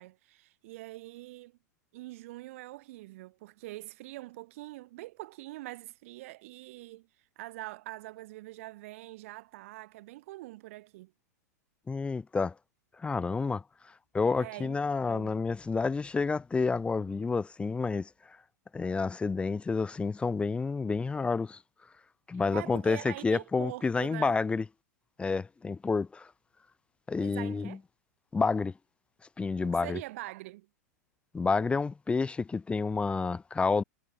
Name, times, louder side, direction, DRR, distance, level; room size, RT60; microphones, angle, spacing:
voice 1, 0.0-1.6 1.9-7.1 7.4-11.1 14.3-14.7 15.0-15.4 22.5-24.4 27.2-27.8 29.6-30.7, right 18 dB, 50° right, 4.5 m, -44 dB
voice 2, 11.9-12.5 13.0-13.6 14.1-18.4 18.7-21.6 22.3-24.6 25.2-26.3 27.1-27.8 28.3-28.7 29.4-30.0 31.3-33.8, left 4 dB, 10° left, 2.4 m, -29 dB
figure-of-eight pair, 95°, 9 cm